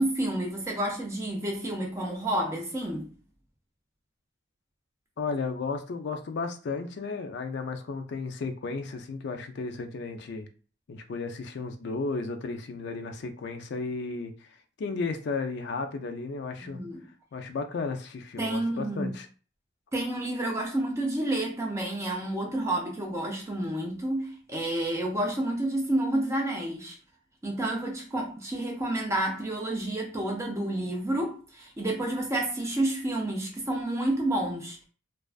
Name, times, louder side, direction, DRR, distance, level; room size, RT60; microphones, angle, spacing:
voice 1, 0.0-3.1 16.6-17.0 18.4-19.1 19.9-27.0 27.4-34.9, right 1 dB, 15° right, 0.4 m, -30 dB
voice 2, 5.2-10.5 10.9-14.5 14.8-16.8 17.3-19.3, left 4 dB, 55° left, 0.3 m, -34 dB
2.3 x 2.2 x 2.4 m
head